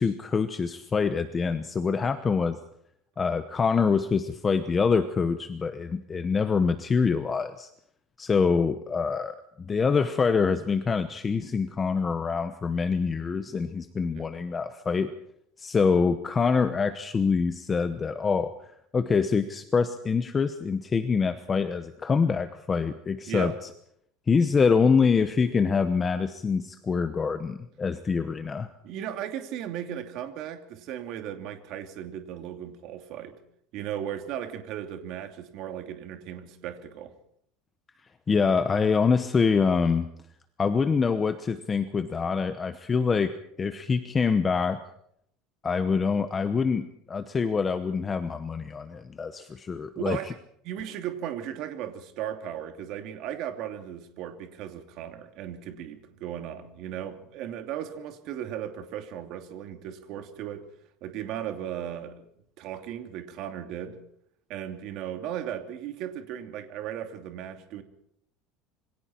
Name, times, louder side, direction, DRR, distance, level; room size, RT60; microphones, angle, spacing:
voice 1, 0.0-2.6 3.2-7.7 8.2-15.1 15.6-18.5 18.9-23.5 24.3-28.7 38.3-40.1 40.6-44.8 45.6-50.2, left 5 dB, 15° left, 9 dB, 0.9 m, -25 dB
voice 2, 28.8-33.3 33.7-37.1 50.0-50.3 50.6-60.7 61.0-62.3 62.6-64.0 64.5-67.8, right 10 dB, 45° right, 6 dB, 2.7 m, -36 dB
27.5 x 23.5 x 4.5 m, 0.70 s
cardioid pair, 170°, 0 cm